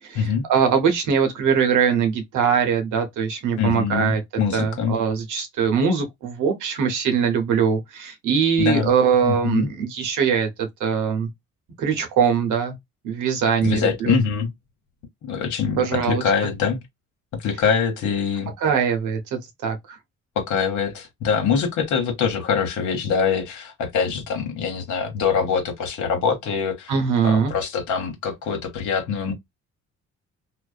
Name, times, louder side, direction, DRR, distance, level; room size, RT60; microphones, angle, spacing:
voice 1, 0.0-4.2 4.5-11.3 11.8-12.8 13.0-14.2 15.8-16.2 18.6-20.0 26.9-27.5, right 7 dB, 85° right, 0.9 m, -22 dB
voice 2, 3.6-5.0 8.6-8.9 9.2-9.7 13.6-14.5 15.2-16.8 17.4-18.5 20.4-26.9 27.2-29.3, left 6 dB, 75° left, 1.0 m, -24 dB
2.5 x 2.1 x 2.4 m
cardioid pair, 90°, 30 cm